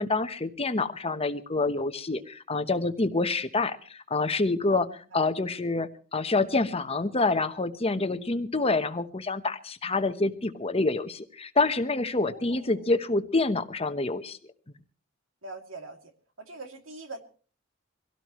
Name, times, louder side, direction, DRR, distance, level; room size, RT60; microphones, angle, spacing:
voice 1, 0.0-14.4, left 3 dB, 30° left, 9 dB, 1.1 m, -27 dB
voice 2, 12.1-12.9 15.4-16.1 16.4-17.2, right 2 dB, 75° right, 5 dB, 2.7 m, -43 dB
24.5 x 17.5 x 3.1 m, 0.40 s
head